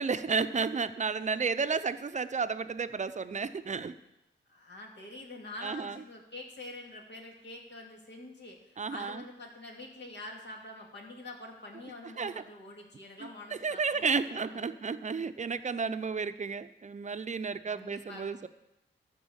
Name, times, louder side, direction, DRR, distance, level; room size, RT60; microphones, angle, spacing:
voice 1, 0.0-4.0 5.6-6.0 8.8-9.2 12.2-12.4 13.2-18.5, right 5 dB, 35° right, 12 dB, 0.6 m, -32 dB
voice 2, 4.5-14.6 17.6-18.3, left 2 dB, 60° left, 0 dB, 2.3 m, -46 dB
13.0 x 4.6 x 7.2 m, 0.90 s
cardioid pair, 55°, 20 cm